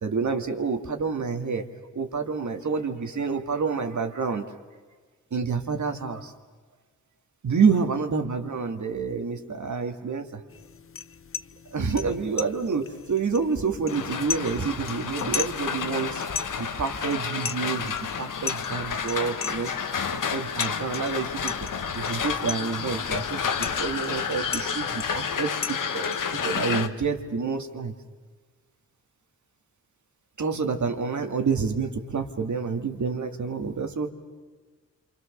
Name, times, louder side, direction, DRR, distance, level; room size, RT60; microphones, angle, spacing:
voice 1, 0.0-1.7 1.9-4.4 5.3-6.3 7.4-10.4 11.7-19.7 20.1-21.7 21.9-27.9 30.4-34.1, right 5 dB, 60° right, 5 dB, 2.2 m, -28 dB
sound 1, 10.5-26.6, left 7 dB, 40° left, 0.7 m, -38 dB
sound 2, 13.9-26.9, left 6 dB, 70° left, 1.3 m, -30 dB
28.0 x 25.0 x 6.7 m, 1.4 s
cardioid pair, 45°, 32 cm